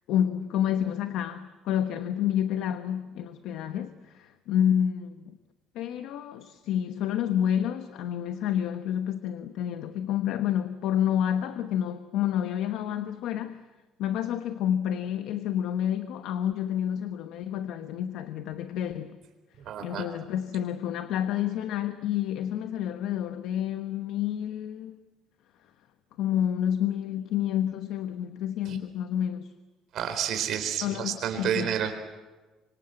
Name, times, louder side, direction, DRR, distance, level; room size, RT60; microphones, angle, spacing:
voice 1, 0.1-5.4 5.7-13.6 14.0-19.2 19.8-25.0 26.2-29.5 30.8-31.7, left 10 dB, 65° left, 1.1 m, -29 dB
voice 2, 19.6-20.1 28.7-28.8 29.9-31.9, right 9 dB, 50° right, 4.1 m, -30 dB
26.0 x 25.0 x 7.9 m
cardioid pair, 170°, 0 cm